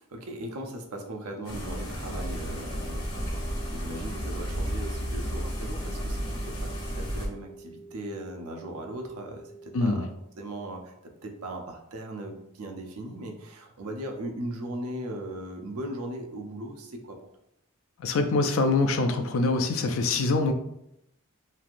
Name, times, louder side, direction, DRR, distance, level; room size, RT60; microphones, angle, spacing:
voice 1, 0.1-3.4 3.7-10.1 10.4-17.2, right 1 dB, 85° right, 4 dB, 0.5 m, -38 dB
sound 1, 1.4-7.3, equal, 85° left, 1.0 m, -32 dB
sound 2, 2.1-10.0, right 3 dB, 20° left, 0.6 m, -48 dB
voice 2, 18.0-20.5, left 3 dB, 65° left, 6 dB, 0.4 m, -24 dB
3.1 x 2.5 x 2.5 m, 0.78 s
head